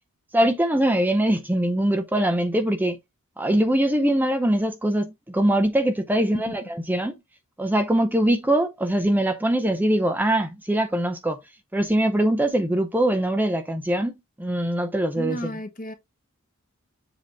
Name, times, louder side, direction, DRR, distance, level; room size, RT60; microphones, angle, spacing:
voice 1, 0.3-3.0 3.4-7.1 7.6-11.4 11.7-15.5, right 1 dB, 10° right, 0.6 m, -22 dB
voice 2, 6.3-6.7 15.1-15.9, equal, 40° left, 1.2 m, -33 dB
7.4 x 2.8 x 5.2 m
head